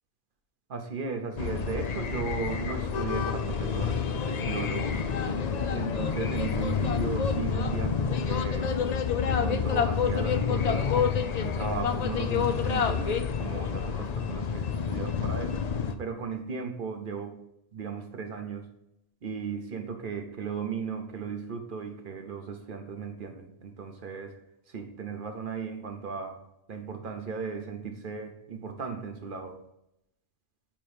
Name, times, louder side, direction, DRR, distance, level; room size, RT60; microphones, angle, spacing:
voice 1, 0.7-5.0 5.7-8.8 9.2-10.9 11.4-15.6 16.0-17.4 17.7-18.7 19.2-24.4 24.7-26.4 26.7-29.6, right 5 dB, 55° right, 5 dB, 1.0 m, -36 dB
sound 1, 1.4-15.9, left 6 dB, 50° left, 0.5 m, -28 dB
8.7 x 3.0 x 5.0 m, 0.80 s
omnidirectional pair, 1.1 m